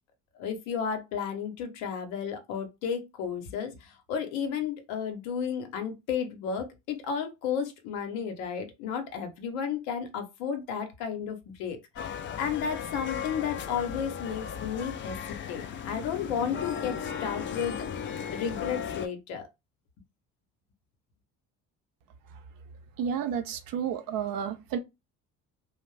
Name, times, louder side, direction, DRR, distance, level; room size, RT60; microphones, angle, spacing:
voice 1, 0.3-15.2 15.5-19.5, left 7 dB, 70° left, 0.8 m, -33 dB
sound 1, 12.0-19.1, left 7 dB, 30° left, 0.4 m, -36 dB
voice 2, 23.0-24.8, right 8 dB, 55° right, 0.6 m, -31 dB
2.5 x 2.1 x 3.1 m
hypercardioid pair, 55°, 40 cm